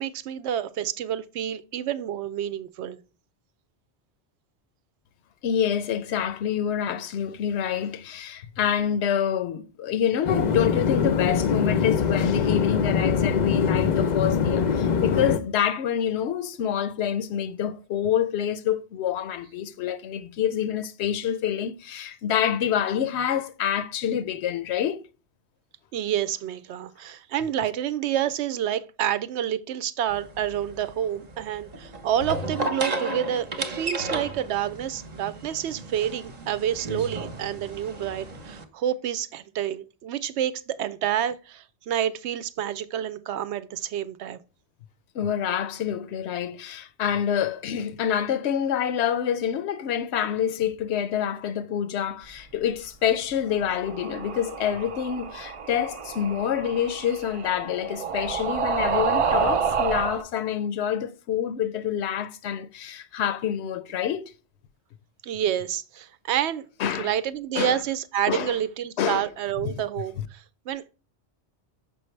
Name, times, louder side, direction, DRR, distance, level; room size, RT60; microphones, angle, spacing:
voice 1, 0.0-3.0 25.9-44.4 65.2-66.6 66.9-70.8, right 10 dB, 80° right, 0.8 m, -28 dB
voice 2, 5.4-25.0 45.1-64.2 66.8-67.1 67.6-67.8 68.3-68.5 69.0-69.3 69.7-69.8, left 9 dB, 75° left, 0.9 m, -27 dB
sound 1, 10.2-15.4, left 6 dB, 50° left, 0.6 m, -23 dB
sound 2, 30.1-38.6, right 2 dB, 40° right, 0.9 m, -34 dB
sound 3, 53.5-60.2, right 6 dB, 55° right, 0.3 m, -29 dB
6.3 x 5.4 x 3.2 m
omnidirectional pair, 1.1 m